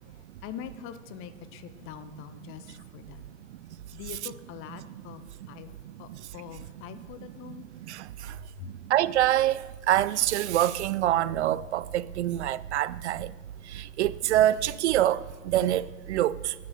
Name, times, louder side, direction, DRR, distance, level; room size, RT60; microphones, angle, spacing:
voice 1, 0.0-3.2 3.9-7.7 8.6-8.7, left 9 dB, 30° left, 0.7 m, -44 dB
voice 2, 8.9-9.6 9.9-13.3 13.7-16.5, right 13 dB, 60° right, 0.5 m, -25 dB
9.5 x 8.9 x 6.4 m
figure-of-eight pair, 100°, 40 cm